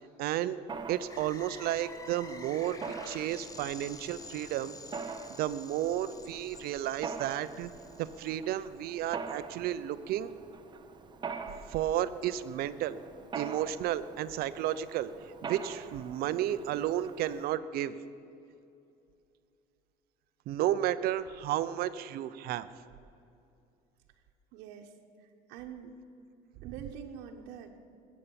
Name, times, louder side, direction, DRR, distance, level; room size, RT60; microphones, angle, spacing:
voice 1, 0.2-0.6 0.9-4.8 5.4-7.7 8.0-10.3 11.7-13.0 13.3-15.1 15.4-18.0 20.5-22.7, right 12 dB, 65° right, 13 dB, 0.7 m, -32 dB
Mechanisms, 0.7-17.5, right 5 dB, 25° right, 0.9 m, -45 dB
sound 1, 1.1-8.3, left 3 dB, 20° left, 0.9 m, -49 dB
voice 2, 24.5-25.9 26.6-27.8, right 8 dB, 85° right, 0 dB, 1.2 m, -45 dB
20.5 x 8.5 x 7.0 m, 2.6 s
cardioid pair, 125°, 17 cm